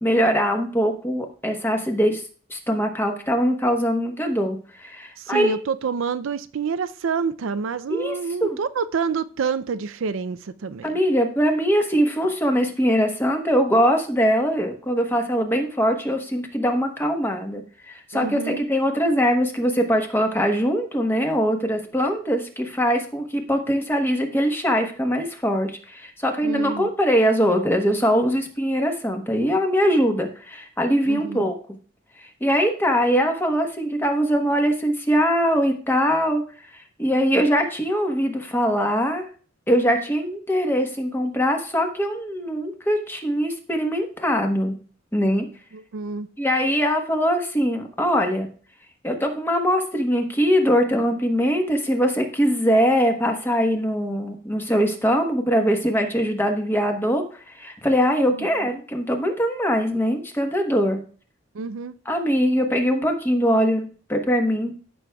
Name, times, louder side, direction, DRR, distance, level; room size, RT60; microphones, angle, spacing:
voice 1, 0.0-2.2 2.5-5.5 7.9-8.1 8.4-8.6 10.8-31.5 32.2-36.4 36.7-39.2 39.7-44.7 45.1-45.5 46.4-48.5 49.0-61.0 62.0-64.7, equal, 10° left, 1.1 m, -22 dB
voice 2, 5.2-11.0 18.1-18.6 26.4-26.9 31.1-31.5 45.7-46.3 61.5-61.9, right 5 dB, 70° right, 0.4 m, -27 dB
14.0 x 6.2 x 2.3 m
head